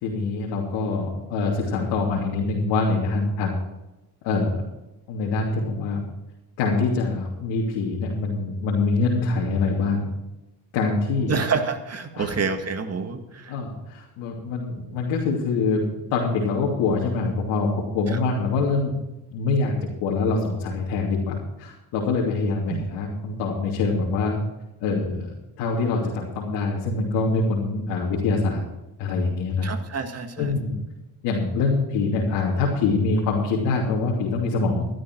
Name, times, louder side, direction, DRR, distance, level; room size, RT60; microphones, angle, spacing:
voice 1, 0.0-3.6 4.2-4.6 5.1-6.0 6.6-10.1 10.7-11.3 12.1-12.3 13.5-15.8 16.1-19.0 19.3-19.7 20.0-24.4 24.8-28.6 29.0-29.7 30.4-30.8 31.2-34.8, left 3 dB, 90° left, -3 dB, 3.0 m, -24 dB
voice 2, 11.3-13.6 18.1-18.2 22.7-22.8 29.6-30.5, right 5 dB, 40° right, 6 dB, 2.0 m, -28 dB
14.5 x 12.0 x 4.6 m, 1.0 s
cardioid pair, 95°, 40 cm